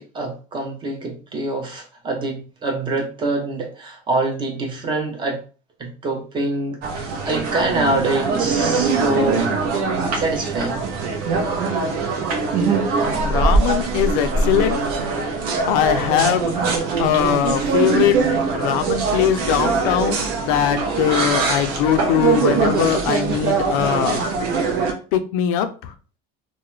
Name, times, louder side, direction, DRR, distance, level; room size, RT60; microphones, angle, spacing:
voice 1, 0.0-5.4 5.8-6.8 7.3-9.5 10.1-10.8, right 2 dB, 25° right, 2 dB, 0.7 m, -25 dB
sound 1, 6.8-24.9, right 4 dB, 60° right, 0.6 m, -22 dB
voice 2, 13.2-14.8 15.7-16.5 17.0-18.2 18.5-24.2 25.1-25.9, left 10 dB, 80° left, 8 dB, 0.4 m, -21 dB
2.3 x 2.1 x 3.0 m, 0.35 s
cardioid pair, 150°, 18 cm